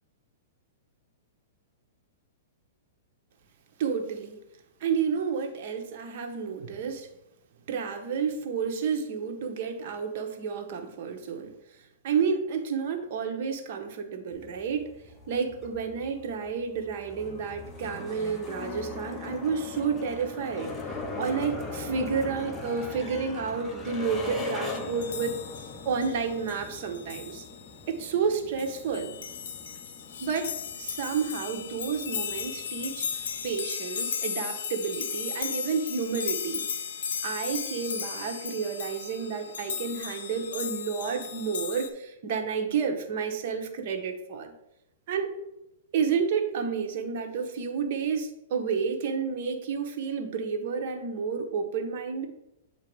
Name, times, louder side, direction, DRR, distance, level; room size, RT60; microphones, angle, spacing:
voice 1, 3.8-4.4 4.8-7.1 7.7-14.9 15.3-20.7 21.2-27.4 27.9-29.1 30.2-36.6 37.2-44.5 45.1-45.3 45.9-52.3, right 6 dB, 50° right, 4 dB, 0.9 m, -30 dB
sound 1, 14.3-33.6, left 3 dB, 15° left, 0.7 m, -41 dB
sound 2, 24.7-41.9, left 7 dB, 75° left, 0.6 m, -36 dB
7.8 x 2.8 x 4.6 m, 0.87 s
hypercardioid pair, 150°, 0 cm